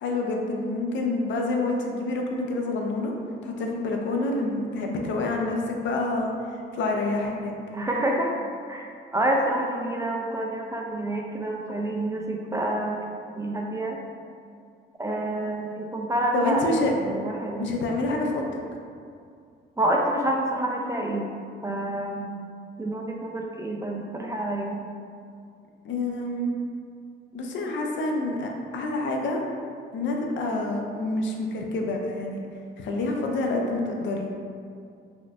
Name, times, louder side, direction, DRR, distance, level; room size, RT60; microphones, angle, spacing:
voice 1, 0.0-3.1 3.4-6.3 6.7-7.5 16.3-16.9 17.6-18.4 25.8-26.5 27.3-29.4 29.9-32.4 32.8-34.3, left 2 dB, 70° left, 1 dB, 0.5 m, -27 dB
voice 2, 7.7-8.3 8.7-13.0 13.4-14.0 15.0-16.6 17.0-17.7 19.8-21.3 21.6-22.3 22.8-24.8, right 1 dB, 15° right, 0 dB, 0.3 m, -28 dB
4.2 x 2.3 x 2.4 m, 2.3 s
cardioid pair, 90°, 20 cm